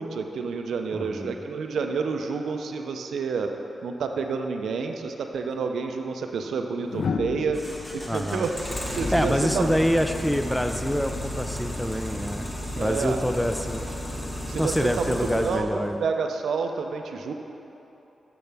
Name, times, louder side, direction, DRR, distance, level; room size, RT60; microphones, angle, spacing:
voice 1, 0.0-3.5 3.8-7.6 7.9-9.7 12.8-13.2 14.5-17.3, right 5 dB, 85° right, 4 dB, 0.5 m, -29 dB
voice 2, 0.9-1.4 8.1-8.4 9.1-12.5 12.8-13.9 14.6-16.0, equal, ahead, 6 dB, 0.5 m, -26 dB
sound 1, 5.3-5.5 6.9-9.9 11.5-11.8, left 5 dB, 70° left, 0.3 m, -34 dB
sound 2, 7.5-15.6, left 1 dB, 30° left, 1.2 m, -33 dB
8.6 x 6.8 x 3.4 m, 3.0 s
cardioid pair, 55°, 0 cm